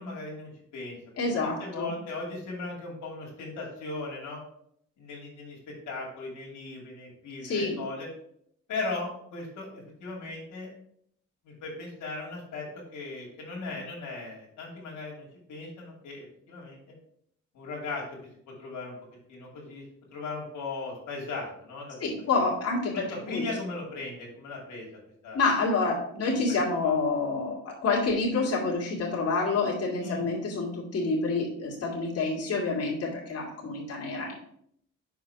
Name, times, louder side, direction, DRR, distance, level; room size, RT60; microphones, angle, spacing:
voice 1, 0.0-1.0 1.4-4.4 5.0-8.1 8.7-10.7 11.4-16.8 17.5-18.0 18.6-18.9 19.3-19.8 20.1-22.1 22.9-24.9 25.2-25.4 26.8-26.9 30.0-30.2, left 3 dB, 80° left, -2 dB, 2.6 m, -38 dB
voice 2, 1.2-1.9 7.4-7.8 22.0-22.9 23.3-23.4 25.3-34.3, left 3 dB, 55° left, -3 dB, 2.5 m, -28 dB
5.8 x 4.8 x 5.8 m, 0.68 s
cardioid pair, 90°, 30 cm